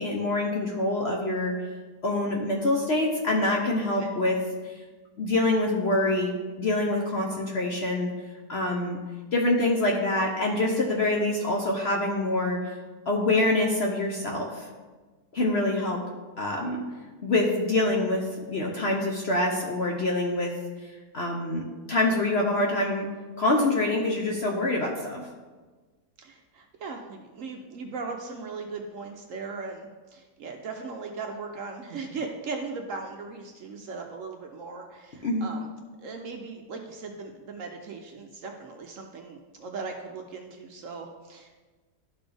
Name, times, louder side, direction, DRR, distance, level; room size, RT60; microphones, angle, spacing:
voice 1, 0.0-1.6 2.0-4.8 5.2-8.1 8.5-9.0 9.3-12.7 13.1-14.7 15.3-16.0 16.4-16.8 17.2-20.5 20.8-23.1 23.4-25.3 35.2-35.5, left 2 dB, 55° left, 0 dB, 0.8 m, -26 dB
voice 2, 26.2-35.7 36.0-41.6, right 4 dB, 65° right, 3 dB, 0.9 m, -38 dB
12.0 x 4.0 x 3.4 m, 1.3 s
omnidirectional pair, 1.8 m